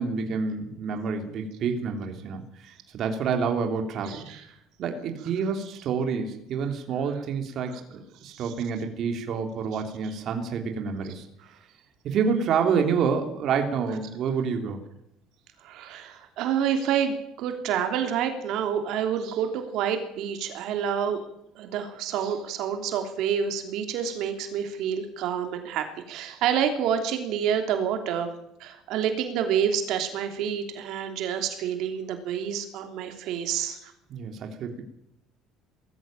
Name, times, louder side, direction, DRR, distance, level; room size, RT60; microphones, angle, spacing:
voice 1, 0.0-4.2 4.8-11.2 12.0-14.8 34.1-34.8, right 6 dB, 45° right, 5 dB, 3.2 m, -28 dB
voice 2, 4.1-4.4 8.2-8.4 15.6-21.2 21.5-28.3 28.6-33.9, right 8 dB, 60° right, 6 dB, 3.2 m, -28 dB
20.0 x 14.5 x 9.0 m, 0.78 s
cardioid pair, 150°, 0 cm